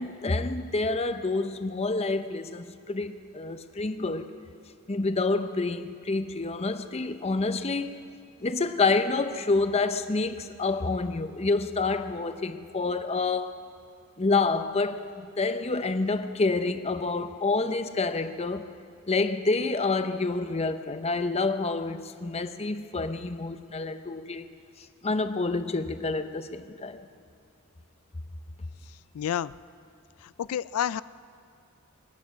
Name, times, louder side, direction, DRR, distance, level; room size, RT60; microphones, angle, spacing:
voice 1, 0.0-4.3 4.9-8.0 8.4-13.6 14.2-18.7 19.1-24.5 24.8-27.1, left 3 dB, 30° left, 10 dB, 0.6 m, -28 dB
voice 2, 29.1-29.5 30.4-31.0, left 9 dB, 80° left, 18 dB, 0.3 m, -29 dB
23.0 x 9.7 x 6.2 m, 2.5 s
head